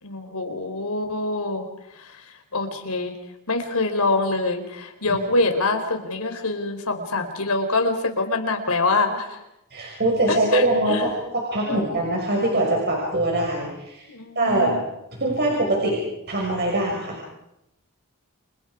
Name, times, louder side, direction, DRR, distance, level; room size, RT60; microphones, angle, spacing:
voice 1, 0.0-1.7 2.0-2.2 2.5-3.1 3.5-9.4 10.3-11.0 11.7-11.8 14.1-14.8, left 3 dB, 85° left, 5 dB, 4.2 m, -25 dB
voice 2, 9.7-14.1 14.4-14.8 15.1-16.0 16.3-17.2, right 1 dB, 50° right, -2 dB, 6.0 m, -23 dB
30.0 x 28.0 x 5.0 m, 0.88 s
head